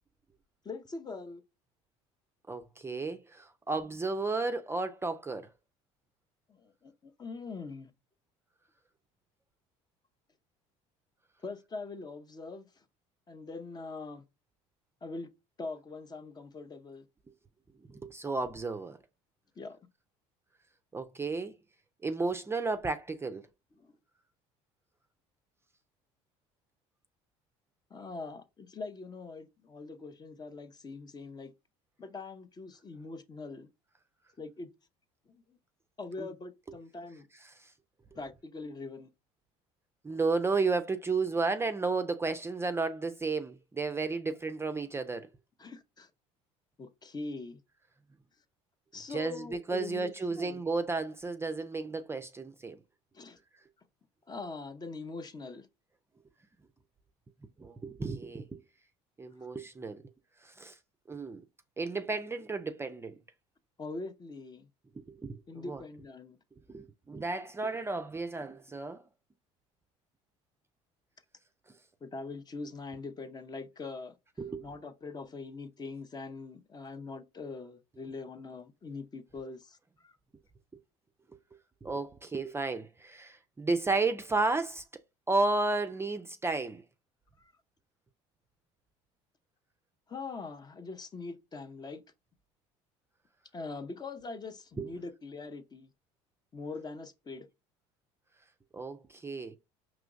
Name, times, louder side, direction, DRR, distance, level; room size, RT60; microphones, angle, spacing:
voice 1, 0.6-1.4 6.5-7.9 11.4-12.7 13.3-14.2 15.0-15.3 15.6-17.0 19.6-19.8 23.8-23.9 27.9-31.5 32.0-33.7 34.4-34.7 35.3-35.4 36.0-37.3 38.1-39.1 45.6-46.1 46.8-47.6 48.9-50.6 53.1-53.4 54.3-55.7 63.8-64.7 65.5-66.4 72.0-74.1 74.6-80.2 87.4-87.5 90.1-92.0 93.5-95.9 96.5-97.5, left 3 dB, 25° left, 0.6 m, -42 dB
voice 2, 2.5-5.5 17.9-19.0 20.9-21.5 22.0-23.4 36.2-36.3 37.6-37.7 40.0-45.3 49.1-52.8 57.6-58.6 59.2-60.0 60.4-60.8 61.1-61.4 61.8-63.2 65.2-65.8 66.7-69.0 74.4-74.6 81.8-84.8 85.3-86.8 94.8-94.9 98.7-99.5, right 3 dB, 15° right, 0.4 m, -33 dB
4.9 x 3.0 x 2.4 m
supercardioid pair, 80°, 15 cm